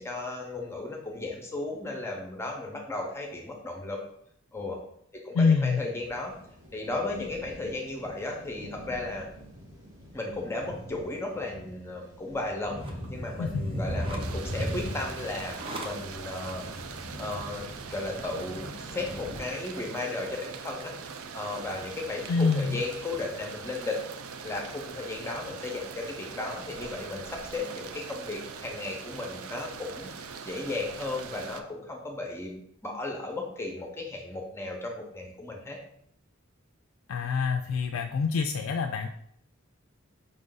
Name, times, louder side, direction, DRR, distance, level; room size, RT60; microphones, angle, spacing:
voice 1, 0.0-4.0 4.5-4.8 5.2-6.4 6.7-9.3 10.1-15.5 15.8-16.7 17.2-24.0 24.4-35.8, left 2 dB, 10° left, 1 dB, 0.7 m, -35 dB
voice 2, 5.3-5.8 13.4-13.7 22.3-22.8 37.1-39.1, left 4 dB, 70° left, 5 dB, 0.3 m, -26 dB
sound 1, 6.0-19.4, equal, 70° right, 1.5 m, -40 dB
sound 2, 12.7-18.6, right 1 dB, 25° right, 0.6 m, -46 dB
sound 3, 14.2-31.6, right 6 dB, 85° right, 0.4 m, -42 dB
5.2 x 2.6 x 3.8 m, 0.69 s
head